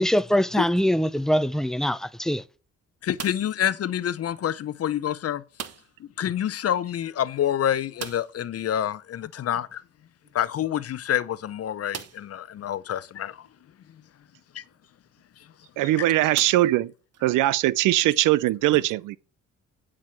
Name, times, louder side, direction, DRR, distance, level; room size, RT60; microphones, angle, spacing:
voice 1, 0.0-2.4, equal, ahead, 0.5 m, -23 dB
voice 2, 3.0-5.4 6.2-9.8 10.3-13.4 14.5-14.6, left 10 dB, 50° left, 0.7 m, -27 dB
sound 1, 3.1-3.7 5.5-6.1 6.4-6.5 6.8-6.9 7.9-8.5 10.3-10.4 11.0-11.1 11.9-12.4 13.1-13.2 15.2-15.4 16.3-17.2, right 8 dB, 55° right, 1.0 m, -40 dB
voice 3, 15.8-16.9 17.2-19.2, right 16 dB, 90° right, 0.5 m, -21 dB
9.4 x 4.9 x 5.8 m
cardioid pair, 90°, 30 cm